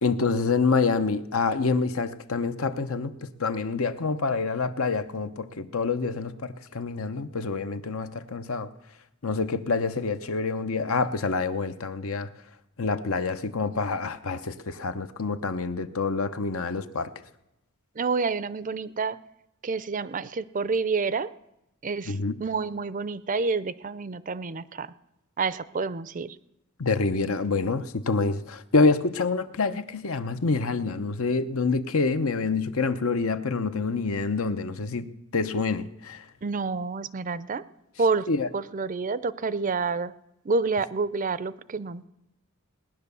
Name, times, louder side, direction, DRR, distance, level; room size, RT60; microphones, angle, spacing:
voice 1, 0.0-8.7 9.2-12.3 12.8-17.1 22.0-22.4 26.8-36.2 38.3-38.5, left 4 dB, 70° left, 11 dB, 0.8 m, -27 dB
voice 2, 18.0-19.2 19.6-21.3 21.8-22.2 22.4-24.9 25.4-26.4 36.4-37.6 38.0-38.2 38.5-40.1 40.5-42.1, right 4 dB, 35° right, 16 dB, 0.5 m, -28 dB
18.5 x 10.5 x 6.9 m, 0.88 s
head